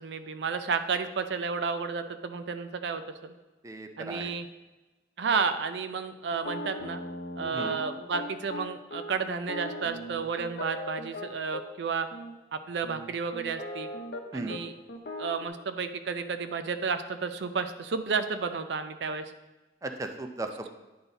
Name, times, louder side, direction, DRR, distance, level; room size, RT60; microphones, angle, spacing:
voice 1, 0.0-3.3 4.0-4.5 5.2-7.0 7.4-12.1 12.5-13.9 14.3-14.7 15.2-19.3, right 5 dB, 75° right, 10 dB, 0.5 m, -32 dB
voice 2, 3.6-4.3 7.5-7.8 14.3-14.6 19.8-20.7, right 2 dB, 20° right, 6 dB, 0.4 m, -36 dB
sound 1, 6.3-11.6 12.1-12.3 12.8-14.2 14.5-14.6 14.9-15.5, left 1 dB, 60° left, 0.7 m, -38 dB
9.5 x 3.9 x 4.0 m, 1.1 s
head